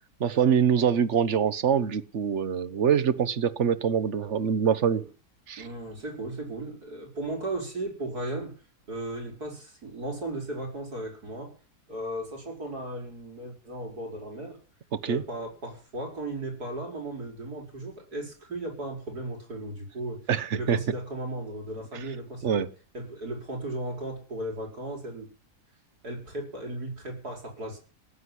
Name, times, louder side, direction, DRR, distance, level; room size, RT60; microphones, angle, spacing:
voice 1, 0.2-5.0 5.5-5.7 15.0-15.2 20.3-20.8 21.9-22.0 22.4-22.7, right 7 dB, 50° right, 1.3 m, -24 dB
voice 2, 5.6-8.5 8.9-11.5 11.9-14.6 15.1-20.2 20.5-22.7 22.9-25.3 26.0-27.8, right 1 dB, 75° right, 6.7 m, -36 dB
18.0 x 7.9 x 9.9 m
omnidirectional pair, 1.7 m